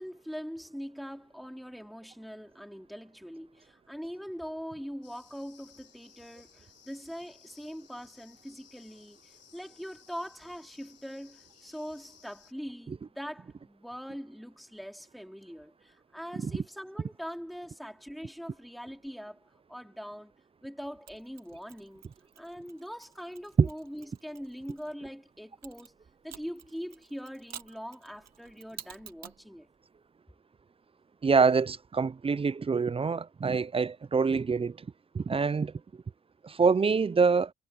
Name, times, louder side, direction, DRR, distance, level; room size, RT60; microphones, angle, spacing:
voice 1, 0.0-20.3 20.6-22.0 22.4-26.0 26.2-29.7, equal, ahead, 4.4 m, -42 dB
sound 1, 5.0-12.5, left 9 dB, 60° left, 4.8 m, -59 dB
Mechanisms, 21.1-24.9 25.6-29.4, right 9 dB, 60° right, 2.3 m, -51 dB
voice 2, 31.2-34.9 35.1-35.7 36.4-37.5, right 5 dB, 20° right, 0.4 m, -25 dB
cardioid pair, 90°, 30 cm